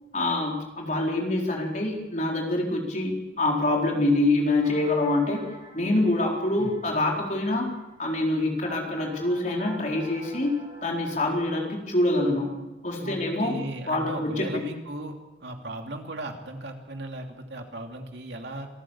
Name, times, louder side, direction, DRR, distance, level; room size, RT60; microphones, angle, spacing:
voice 1, 0.1-5.4 5.7-7.7 8.0-12.5 12.8-13.6 13.9-14.6, left 2 dB, 40° left, 0 dB, 4.3 m, -25 dB
sound 1, 4.6-11.3, right 1 dB, 25° right, 4.7 m, -47 dB
voice 2, 13.0-15.2 15.4-18.7, right 1 dB, 65° right, 3 dB, 2.8 m, -37 dB
26.0 x 14.5 x 7.3 m, 1.1 s
head